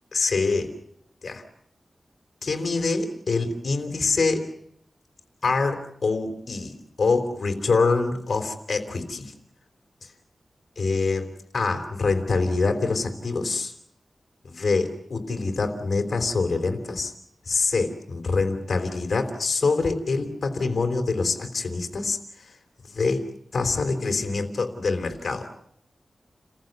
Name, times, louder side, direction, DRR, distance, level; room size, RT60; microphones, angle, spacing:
voice 1, 0.1-0.8 1.2-1.4 2.4-4.5 5.4-9.3 10.0-10.1 10.8-11.3 11.5-13.7 14.4-17.1 17.5-22.5 22.8-25.5, left 4 dB, 65° left, 7 dB, 3.8 m, -25 dB
29.5 x 15.0 x 9.5 m, 0.71 s
wide cardioid pair, 85°, 0 cm